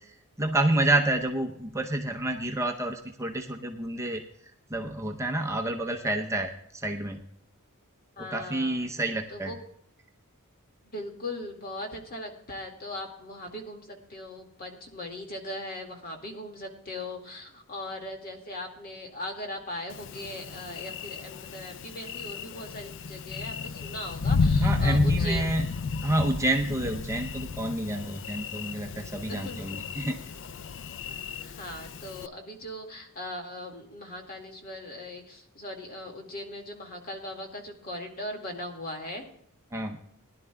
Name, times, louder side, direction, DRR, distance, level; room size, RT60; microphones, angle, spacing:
voice 1, 0.0-4.2 4.7-7.2 8.2-9.5 24.6-25.6 26.0-30.2 39.7-40.0, right 1 dB, 15° right, 2 dB, 0.7 m, -29 dB
voice 2, 8.2-8.8 9.3-9.6 10.9-25.6 29.3-29.8 31.1-39.3, left 1 dB, 45° left, 3 dB, 2.1 m, -39 dB
Thunder, 19.9-32.3, left 4 dB, 60° left, 0.4 m, -32 dB
20.0 x 11.0 x 2.3 m, 0.71 s
head